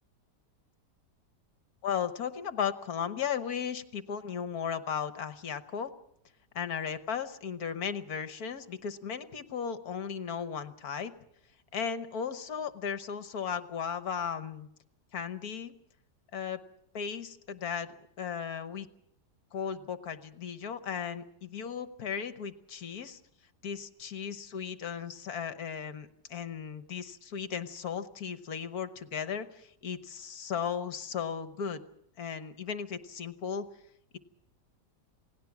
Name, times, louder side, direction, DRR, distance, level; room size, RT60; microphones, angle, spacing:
voice 1, 1.8-5.9 6.5-11.1 11.7-14.7 15.1-15.7 16.3-16.6 16.9-18.9 19.5-23.2 23.6-31.8 32.2-33.7, left 7 dB, 65° left, 10 dB, 1.5 m, -36 dB
28.0 x 18.0 x 6.0 m, 0.75 s
omnidirectional pair, 1.9 m